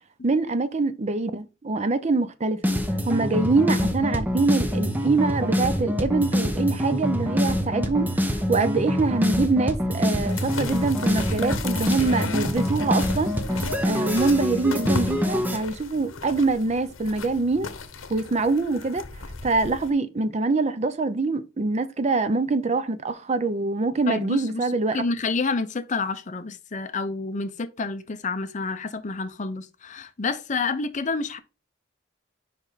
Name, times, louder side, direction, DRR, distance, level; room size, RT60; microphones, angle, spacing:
voice 1, 0.2-2.7 3.1-8.2 8.5-13.3 13.8-17.7 18.1-19.0 19.4-25.0, right 3 dB, 35° right, 0.5 m, -24 dB
sound 1, 2.6-15.6, equal, 10° right, 0.8 m, -25 dB
sound 2, 10.3-19.9, left 4 dB, 80° left, 0.9 m, -36 dB
voice 2, 24.1-31.4, left 4 dB, 40° left, 0.6 m, -29 dB
5.2 x 5.1 x 4.0 m
head